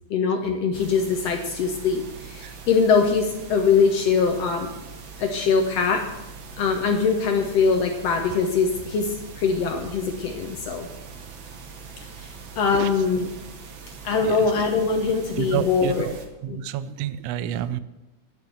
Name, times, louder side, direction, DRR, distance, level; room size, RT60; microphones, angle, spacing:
voice 1, 0.1-4.7 5.2-6.0 6.6-10.9 12.2-12.3 12.6-13.3 14.0-16.1 16.5-16.6, left 5 dB, 65° left, 3 dB, 1.8 m, -22 dB
sound 1, 0.7-16.3, right 5 dB, 55° right, 1.4 m, -42 dB
voice 2, 14.2-14.5 15.4-16.1 16.4-17.8, right 10 dB, 90° right, 15 dB, 1.4 m, -29 dB
9.9 x 6.6 x 7.8 m, 1.1 s
omnidirectional pair, 3.5 m